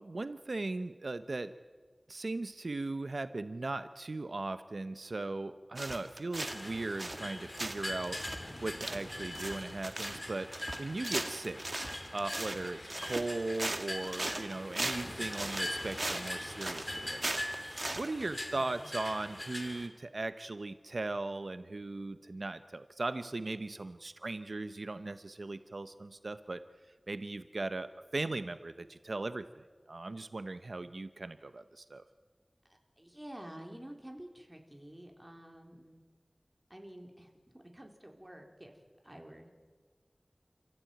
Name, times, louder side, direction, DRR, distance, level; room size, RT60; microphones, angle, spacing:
voice 1, 0.0-1.5 2.1-8.2 8.6-11.6 12.1-17.4 17.9-26.6 27.1-32.0, right 2 dB, 85° right, 11 dB, 0.8 m, -38 dB
sound 1, 5.8-6.7 7.0-7.3 7.6-18.1, right 1 dB, 50° right, 1.9 m, -38 dB
sound 2, 6.3-19.9, left 1 dB, 30° left, 3.2 m, -42 dB
voice 2, 18.5-18.9 22.3-22.4 33.0-36.0 36.7-38.7 39.0-39.5, right 1 dB, 20° right, 3 dB, 4.0 m, -50 dB
29.5 x 14.5 x 9.2 m, 1.5 s
wide cardioid pair, 50°, 0 cm